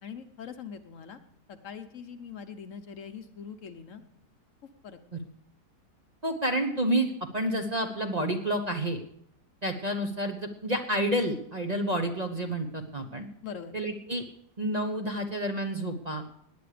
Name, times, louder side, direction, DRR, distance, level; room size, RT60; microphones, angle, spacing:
voice 1, 0.0-1.2 1.5-4.0 4.8-5.0 13.4-13.8, left 7 dB, 60° left, 9 dB, 1.1 m, -42 dB
voice 2, 6.2-9.0 9.6-13.3 13.7-14.2 14.6-16.2, right 1 dB, 30° right, 4 dB, 0.9 m, -29 dB
18.0 x 10.0 x 5.0 m, 0.70 s
omnidirectional pair, 1.7 m